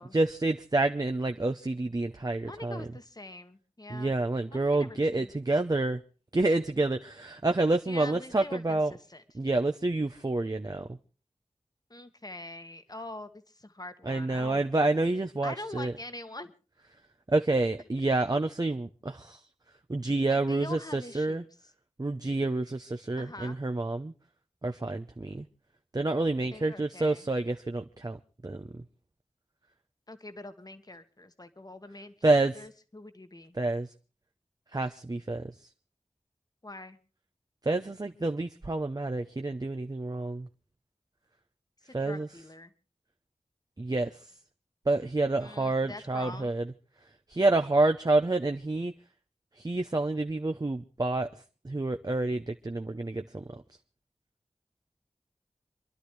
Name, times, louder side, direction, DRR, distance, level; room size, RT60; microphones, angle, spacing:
voice 1, 0.0-2.8 3.9-6.0 6.3-8.9 9.3-10.9 14.1-15.9 17.3-19.4 19.9-21.4 22.0-24.1 24.6-25.4 25.9-28.2 28.4-28.6 32.2-32.6 33.6-33.9 34.7-35.5 37.6-40.5 41.9-42.3 43.8-44.1 44.9-46.7 47.3-48.9 49.6-51.3 51.6-53.4, right 2 dB, 35° right, 0.8 m, -28 dB
voice 2, 2.4-4.1 4.5-5.3 7.8-9.4 11.9-14.6 15.4-16.5 20.3-21.7 23.2-23.6 26.5-27.3 30.1-33.6 36.6-37.0 41.8-42.7 45.4-46.5, left 2 dB, 35° left, 1.6 m, -44 dB
27.5 x 11.5 x 3.3 m
wide cardioid pair, 60°, 12 cm